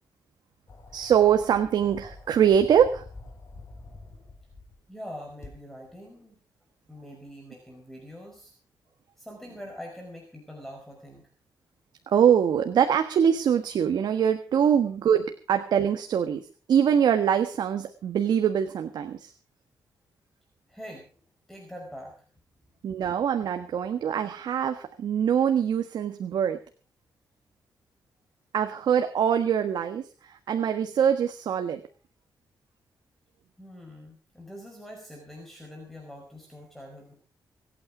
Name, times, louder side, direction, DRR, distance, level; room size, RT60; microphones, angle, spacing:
sound 1, 0.7-4.8 5.4-5.5, left 3 dB, 40° left, 4.4 m, -46 dB
voice 1, 0.9-3.0 12.1-19.3 22.8-26.6 28.5-31.8, right 8 dB, 75° right, 7 dB, 1.4 m, -23 dB
voice 2, 3.8-4.2 4.9-6.4 6.9-8.5 9.2-11.3 20.7-21.2 21.5-22.2 33.6-37.1, equal, 5° left, 1 dB, 5.0 m, -44 dB
25.5 x 8.9 x 4.9 m, 0.38 s
wide cardioid pair, 130°, 7 cm